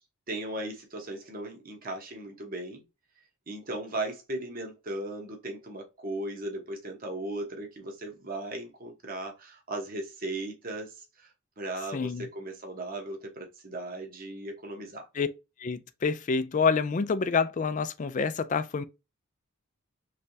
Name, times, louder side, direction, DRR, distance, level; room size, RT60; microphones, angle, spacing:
voice 1, 0.3-2.8 3.5-15.1, right 1 dB, 40° right, 1.0 m, -37 dB
voice 2, 11.9-12.3 15.1-15.3 15.6-18.8, left 5 dB, 35° left, 0.3 m, -27 dB
3.3 x 3.2 x 2.6 m
head